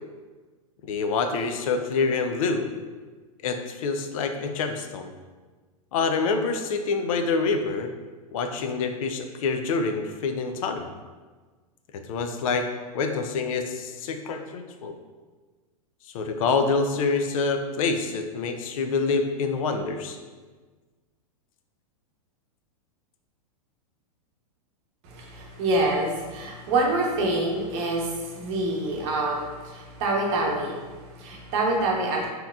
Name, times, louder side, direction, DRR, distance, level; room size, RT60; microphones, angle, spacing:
voice 1, 0.8-2.7 3.4-5.1 5.9-7.9 8.3-10.9 11.9-12.7 12.9-14.9 16.1-20.2, left 4 dB, 65° left, 6 dB, 0.4 m, -26 dB
voice 2, 25.0-32.3, right 2 dB, 50° right, -1 dB, 0.8 m, -26 dB
3.5 x 2.8 x 2.3 m, 1.4 s
hypercardioid pair, 125°, 19 cm